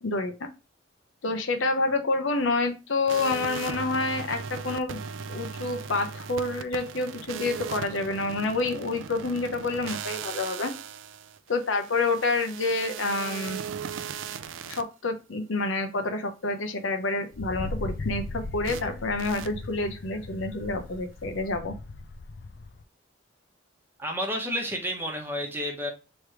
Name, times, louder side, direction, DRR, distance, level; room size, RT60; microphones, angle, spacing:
voice 1, 0.0-0.5 1.2-5.0 5.3-10.7 11.5-13.6 14.7-21.7, left 3 dB, 85° left, 6 dB, 0.7 m, -28 dB
sound 1, 3.1-14.8 18.6-18.8 19.2-19.5, right 7 dB, 85° right, 0.4 m, -38 dB
Wind, 17.3-22.8, left 3 dB, 60° left, 0.4 m, -38 dB
voice 2, 24.0-25.9, equal, 10° right, 2 dB, 0.9 m, -30 dB
3.3 x 3.1 x 4.7 m, 0.30 s
head